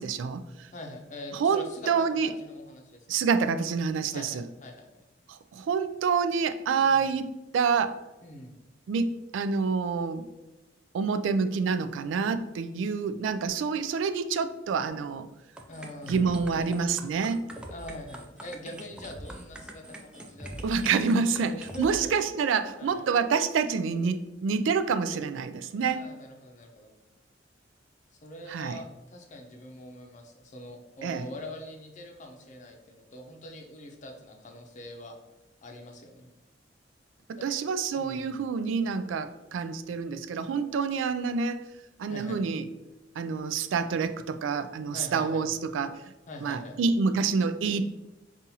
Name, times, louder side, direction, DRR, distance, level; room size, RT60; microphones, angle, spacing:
voice 1, 0.0-0.7 1.3-2.3 3.1-4.4 5.3-8.0 8.9-10.3 10.9-15.3 16.0-17.5 20.6-26.1 28.5-28.8 31.0-31.3 37.3-41.6 42.0-42.7 43.2-46.0 46.4-47.8, right 5 dB, 85° right, 10 dB, 0.3 m, -27 dB
voice 2, 0.7-1.9 2.2-3.0 4.1-5.0 6.8-7.1 8.2-8.6 15.7-16.7 17.7-20.7 21.3-22.2 22.8-23.0 25.8-26.9 28.2-35.1 35.6-36.3 37.4-37.5 37.9-38.4 42.1-42.4 44.9-45.5 46.3-46.8, left 1 dB, 40° left, 3 dB, 0.6 m, -43 dB
sound 1, 15.6-22.0, right 1 dB, 5° right, 0.3 m, -43 dB
5.4 x 2.4 x 2.7 m, 1.0 s
head